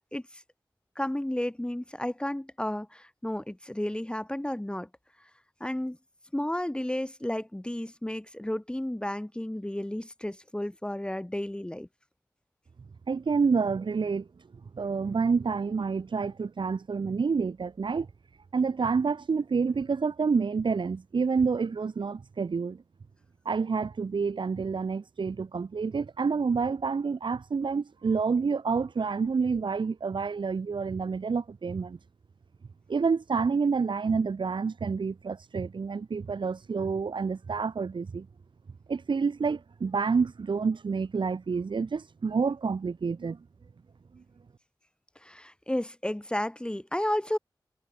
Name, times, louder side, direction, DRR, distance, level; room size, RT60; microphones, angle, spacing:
voice 1, 0.1-0.4 1.0-4.9 5.6-6.0 6.3-11.9 45.2-47.4, left 1 dB, 10° left, 2.4 m, -32 dB
voice 2, 13.1-14.3 14.7-18.1 18.5-22.8 23.4-32.0 32.9-38.3 38.9-43.4 44.1-44.2, right 5 dB, 85° right, 2.6 m, -28 dB
wide cardioid pair, 85°, 8 cm